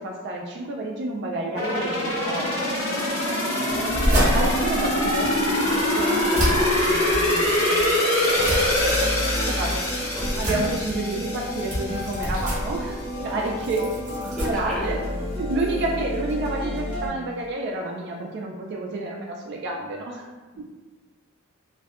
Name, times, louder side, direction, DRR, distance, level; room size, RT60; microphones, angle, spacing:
voice 1, 0.0-2.7 4.1-9.8 10.4-13.9 14.2-15.0 15.3-20.3, right 2 dB, 55° right, 0 dB, 0.3 m, -30 dB
sound 1, 1.6-12.3 12.7-12.8, left 1 dB, 85° left, 0.9 m, -24 dB
voice 2, 3.5-3.9 9.4-9.6 10.0-10.3 14.3-14.9 20.5-20.6, equal, 5° left, -7 dB, 0.6 m, -35 dB
sound 2, 3.7-15.4, equal, 35° right, 0.8 m, -29 dB
sound 3, 8.8-17.1, left 1 dB, 50° left, 0.7 m, -32 dB
2.5 x 2.2 x 2.3 m, 1.3 s
head